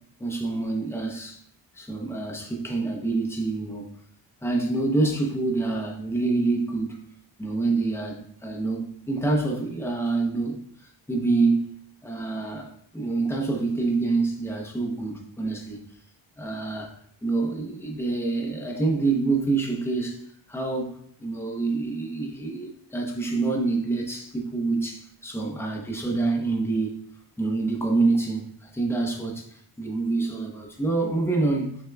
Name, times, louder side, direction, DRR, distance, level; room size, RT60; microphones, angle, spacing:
voice 1, 0.2-1.4 1.7-3.9 4.4-7.0 7.4-11.7 12.0-15.8 16.4-17.0 17.2-26.9 27.4-31.8, right 3 dB, 5° left, 0 dB, 0.7 m, -27 dB
6.4 x 3.6 x 2.2 m, 0.67 s
wide cardioid pair, 140°, 47 cm